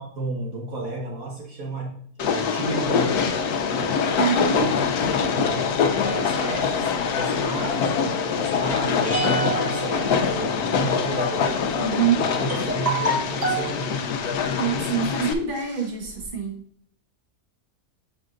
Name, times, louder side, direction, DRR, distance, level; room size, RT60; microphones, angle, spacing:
voice 1, 0.0-3.3 4.4-4.7 5.4-11.5 12.1-14.1, right 2 dB, 65° right, -1 dB, 1.4 m, -33 dB
Train, 2.2-15.3, left 6 dB, 80° left, 1.2 m, -24 dB
voice 2, 4.2-4.7 5.4-5.5 11.8-12.4 14.4-16.6, right 6 dB, 35° right, 0 dB, 1.5 m, -25 dB
sound 1, 6.0-7.3 9.1-10.8 11.8-11.9 12.5-13.7 14.5-14.7 15.2-15.3 15.5-16.3, right 2 dB, 10° right, 1.3 m, -29 dB
8.1 x 5.2 x 2.5 m, 0.63 s
omnidirectional pair, 1.6 m